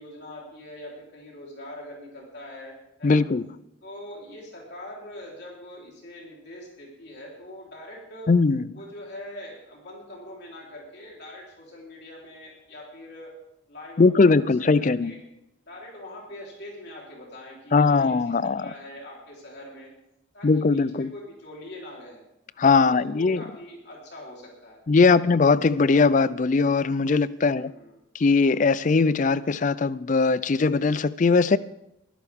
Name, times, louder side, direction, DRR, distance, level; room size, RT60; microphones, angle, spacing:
voice 1, 0.0-3.2 3.8-8.3 8.7-13.3 13.7-15.2 15.6-19.9 20.3-22.2 22.9-24.8 25.1-25.2 27.5-28.0, left 1 dB, 55° left, 3.7 m, -43 dB
voice 2, 3.0-3.4 8.3-8.6 14.0-15.1 17.7-18.6 20.4-21.1 22.6-23.4 24.9-27.7 28.1-31.6, left 4 dB, 40° left, 0.4 m, -20 dB
22.5 x 11.0 x 3.6 m
head